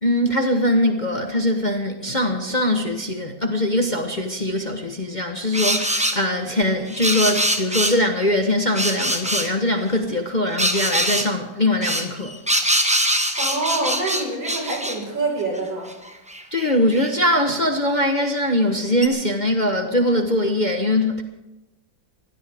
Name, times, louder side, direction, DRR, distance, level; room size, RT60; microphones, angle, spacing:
voice 1, 0.0-12.4 16.5-21.2, left 1 dB, 30° left, 1.0 m, -22 dB
sound 1, 5.5-6.2 6.9-8.0 8.7-9.5 10.6-11.3 11.8-15.0 15.6-15.7 15.9-17.1 18.3-18.4 19.0-19.1, right 1 dB, 5° right, 1.0 m, -23 dB
voice 2, 13.4-15.9, right 2 dB, 85° right, 5.8 m, -26 dB
22.5 x 16.5 x 3.6 m
omnidirectional pair, 2.1 m